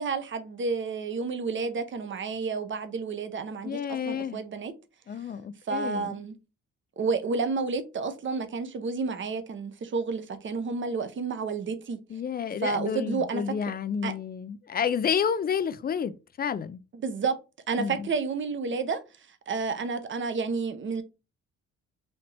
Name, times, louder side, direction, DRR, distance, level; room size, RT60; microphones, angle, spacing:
voice 1, 0.0-3.8 4.1-4.7 5.7-6.3 7.0-12.0 12.6-13.4 14.0-14.1 16.9-17.4 17.7-19.0 19.5-21.0, right 4 dB, 40° right, 0.8 m, -30 dB
voice 2, 3.6-4.4 5.1-6.2 12.1-16.1 16.4-16.8 17.8-18.1, left 7 dB, 30° left, 0.4 m, -30 dB
4.2 x 2.8 x 3.3 m
cardioid pair, 90°, 30 cm